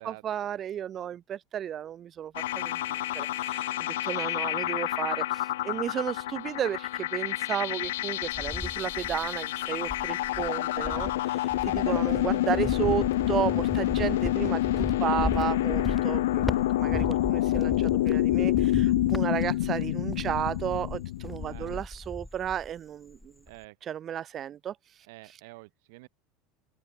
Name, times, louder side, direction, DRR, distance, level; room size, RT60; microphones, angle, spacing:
voice 1, 0.0-3.7 4.0-16.4 16.8-23.2 23.8-24.8 25.2-25.4, right 10 dB, 40° right, 1.5 m, -33 dB
sound 1, 2.3-21.8, left 15 dB, 85° left, 1.8 m, -28 dB
Cricket, 7.8-9.4 9.8-22.8 23.1-23.6, left 1 dB, 5° left, 1.2 m, -37 dB
voice 2, 13.8-14.2 16.2-16.7 21.5-21.8 23.5-23.8 25.1-26.1, right 25 dB, 75° right, 2.8 m, -49 dB
open air
supercardioid pair, 110°, 0 cm